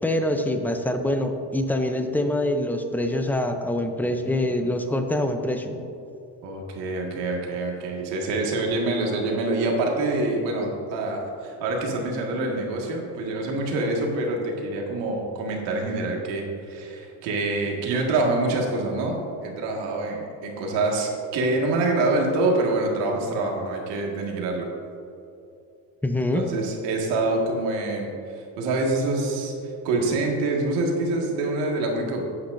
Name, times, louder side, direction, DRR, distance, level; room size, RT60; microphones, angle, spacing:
voice 1, 0.0-5.8 26.0-26.4, left 1 dB, 5° left, 6 dB, 0.5 m, -25 dB
voice 2, 6.4-24.7 26.3-32.2, right 2 dB, 80° right, 0 dB, 1.9 m, -26 dB
11.5 x 8.5 x 2.6 m, 2.7 s
cardioid pair, 120°, 42 cm